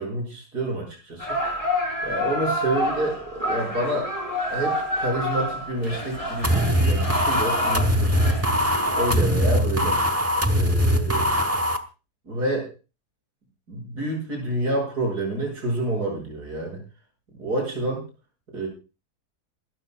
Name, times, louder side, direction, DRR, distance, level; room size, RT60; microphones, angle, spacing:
voice 1, 0.0-1.7 2.0-4.1 4.5-8.3 9.0-10.0 10.5-11.3 12.3-12.7 13.7-16.8 17.3-18.1 18.5-18.7, right 1 dB, 75° right, 0 dB, 7.6 m, -28 dB
sound 1, 1.2-9.1, left 1 dB, 20° left, 3.7 m, -29 dB
sound 2, 6.4-11.8, equal, 10° right, 1.0 m, -21 dB
24.5 x 13.5 x 2.4 m, 0.32 s
omnidirectional pair, 1.7 m